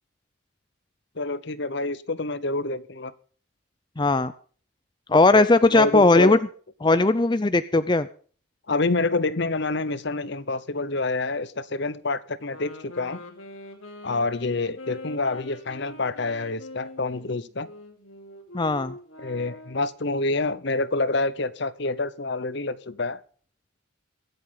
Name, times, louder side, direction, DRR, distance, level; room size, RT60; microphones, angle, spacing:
voice 1, 1.2-3.1 5.3-6.4 8.7-13.3 14.0-17.7 19.2-23.2, left 3 dB, 55° left, 0.9 m, -27 dB
voice 2, 4.0-4.3 5.1-6.4 6.8-8.1 18.5-18.9, left 2 dB, 20° left, 0.5 m, -18 dB
sound 1, 12.4-20.0, left 1 dB, 80° left, 2.9 m, -44 dB
23.5 x 8.1 x 3.9 m
head